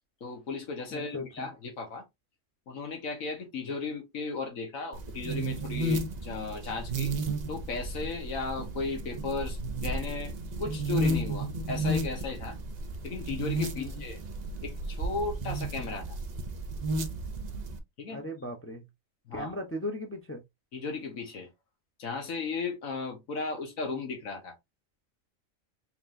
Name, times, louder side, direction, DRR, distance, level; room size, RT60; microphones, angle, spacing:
voice 1, 0.2-2.0 2.7-7.1 7.5-12.6 13.0-14.2 14.6-16.2 18.0-18.2 19.3-19.5 20.7-21.5 22.0-24.5, left 4 dB, 85° left, 1.7 m, -35 dB
voice 2, 0.9-1.5 13.7-14.0 18.1-18.8 19.3-20.4, left 1 dB, 15° left, 0.5 m, -37 dB
sound 1, 4.9-17.8, right 2 dB, 45° right, 0.6 m, -33 dB
4.3 x 3.2 x 2.6 m
omnidirectional pair, 1.4 m